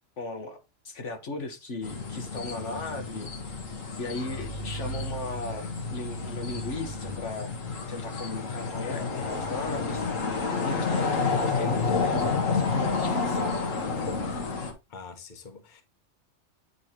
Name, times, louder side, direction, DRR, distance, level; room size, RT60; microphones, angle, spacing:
voice 1, 0.2-3.5 4.0-7.5 7.9-10.1 10.6-13.6, left 3 dB, 65° left, 1.5 m, -37 dB
sound 1, 1.8-14.7, left 4 dB, 85° left, 1.8 m, -30 dB
voice 2, 14.9-15.8, left 5 dB, 40° left, 1.2 m, -45 dB
9.0 x 3.2 x 4.2 m
omnidirectional pair, 1.3 m